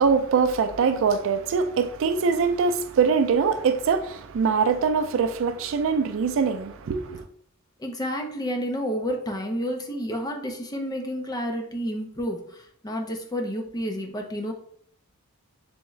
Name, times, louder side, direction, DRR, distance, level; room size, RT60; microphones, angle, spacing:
voice 1, 0.0-7.3, right 5 dB, 60° right, 0.3 m, -23 dB
voice 2, 7.8-14.5, equal, 15° left, 0.5 m, -30 dB
3.6 x 3.5 x 3.1 m
head